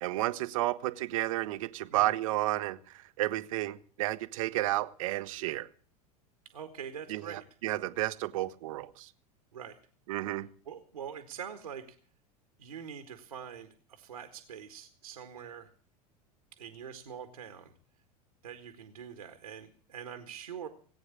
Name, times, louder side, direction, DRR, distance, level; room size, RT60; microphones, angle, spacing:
voice 1, 0.0-5.7 7.1-9.1 10.1-10.5, right 16 dB, 55° right, 15 dB, 1.0 m, -32 dB
voice 2, 6.5-7.4 9.5-9.8 10.6-12.0 12.6-15.7 16.6-17.7 18.4-20.7, right 8 dB, 75° right, 8 dB, 1.7 m, -44 dB
18.5 x 9.2 x 8.3 m, 0.43 s
figure-of-eight pair, 80°, 20 cm